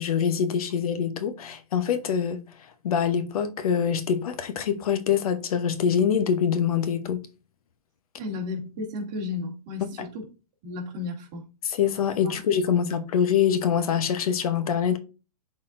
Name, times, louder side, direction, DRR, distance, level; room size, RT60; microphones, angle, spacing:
voice 1, 0.0-2.4 2.8-7.2 10.0-10.1 11.6-15.0, left 8 dB, 60° left, 0.9 m, -24 dB
voice 2, 8.2-10.2 10.6-11.4, left 3 dB, 30° right, 2.2 m, -33 dB
11.5 x 4.1 x 2.5 m
hypercardioid pair, 165°, 21 cm